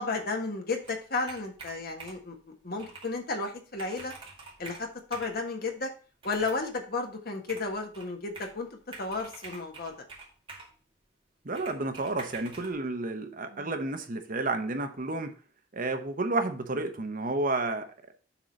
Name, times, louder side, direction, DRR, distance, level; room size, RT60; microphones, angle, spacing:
voice 1, 0.0-2.4 2.6-4.1 4.6-5.9 6.2-9.9 13.5-13.7, left 3 dB, 55° left, 3 dB, 1.5 m, -33 dB
Computer keyboard, 0.8-2.3 2.8-3.1 3.5-3.6 3.8-5.4 6.2-6.7 7.5-8.6 8.9-10.8 11.6-12.7, right 3 dB, 30° right, 2.2 m, -46 dB
voice 2, 11.4-15.3 15.7-17.9, right 2 dB, 45° right, 6 dB, 0.9 m, -31 dB
7.3 x 3.9 x 6.3 m, 0.39 s
head